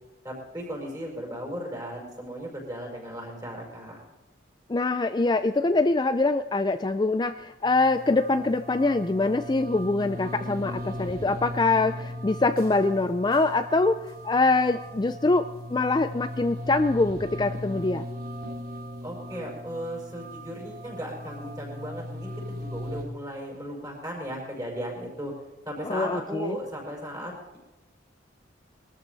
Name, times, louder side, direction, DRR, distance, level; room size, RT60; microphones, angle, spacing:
voice 1, 0.2-4.0 19.0-25.3 25.7-27.6, equal, 20° right, -1 dB, 5.7 m, -36 dB
voice 2, 4.7-18.0 25.8-26.6, left 3 dB, 20° left, 10 dB, 0.4 m, -24 dB
sound 1, 7.6-23.0, equal, 50° right, 3.0 m, -38 dB
21.5 x 13.5 x 4.0 m, 1.1 s
head